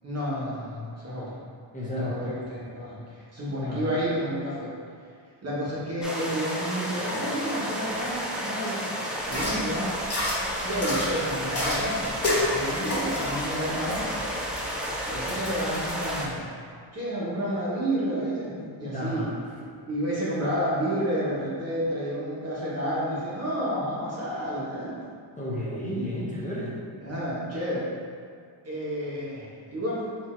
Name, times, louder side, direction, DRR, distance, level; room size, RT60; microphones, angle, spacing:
voice 1, 0.0-1.4 2.0-4.7 5.4-8.8 9.3-10.0 10.6-14.2 15.1-16.5 16.9-19.2 19.6-25.0 27.0-27.9 28.6-30.0, equal, 35° right, -7 dB, 1.2 m, -30 dB
voice 2, 1.7-2.2 3.7-3.9 18.6-19.3 25.4-26.8, left 1 dB, 15° left, -7 dB, 0.8 m, -32 dB
sound 1, 6.0-16.3, equal, ahead, 0.4 m, -32 dB
sound 2, 9.2-16.2, left 1 dB, 30° left, 1.2 m, -31 dB
4.5 x 2.7 x 4.4 m, 2.2 s
wide cardioid pair, 170°, 47 cm